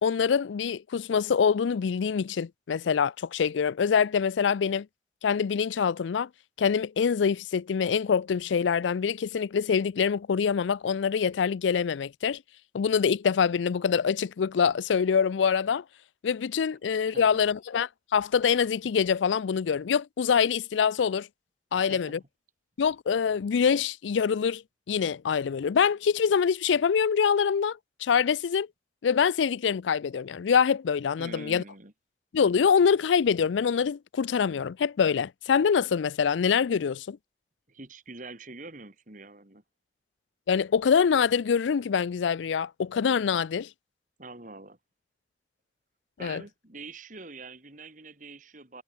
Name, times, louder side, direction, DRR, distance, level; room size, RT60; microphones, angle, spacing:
voice 1, 0.0-4.9 5.2-6.3 6.6-12.4 12.7-15.8 16.2-21.3 21.7-22.2 22.8-24.6 24.9-28.7 29.0-31.6 32.3-37.2 40.5-43.7 46.2-46.4, left 6 dB, 90° left, 0.4 m, -25 dB
voice 2, 17.1-17.4 21.7-22.3 31.2-31.9 37.7-39.6 44.2-44.8 46.2-48.8, right 3 dB, 45° right, 3.0 m, -45 dB
head